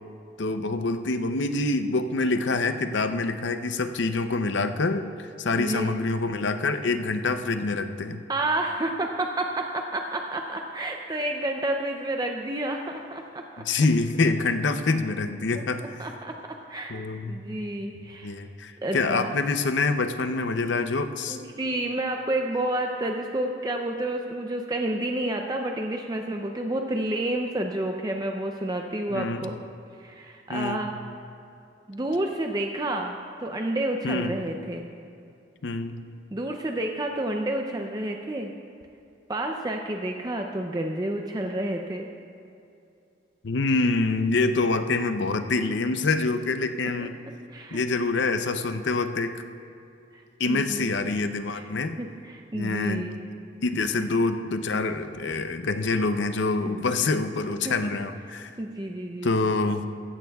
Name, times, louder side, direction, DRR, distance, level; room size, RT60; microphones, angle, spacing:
voice 1, 0.4-8.2 13.6-15.8 16.9-17.4 17.9-21.4 29.1-29.5 30.5-30.9 34.0-34.4 35.6-36.0 43.4-47.2 47.7-49.4 50.4-52.0 52.5-53.1 53.6-58.5 59.2-59.9, left 3 dB, 75° left, 8 dB, 0.6 m, -26 dB
voice 2, 5.6-5.9 8.3-13.6 15.5-15.6 16.0-17.0 17.3-18.3 18.8-19.3 20.6-20.7 21.3-29.6 30.0-30.9 31.9-34.9 36.3-38.5 39.3-42.1 47.5-47.8 50.1-51.1 51.5-51.6 52.0-53.2 56.6-56.7 57.6-57.7 58.6-59.3, right 1 dB, 20° right, 3 dB, 0.5 m, -30 dB
15.5 x 15.0 x 2.3 m, 2.6 s
head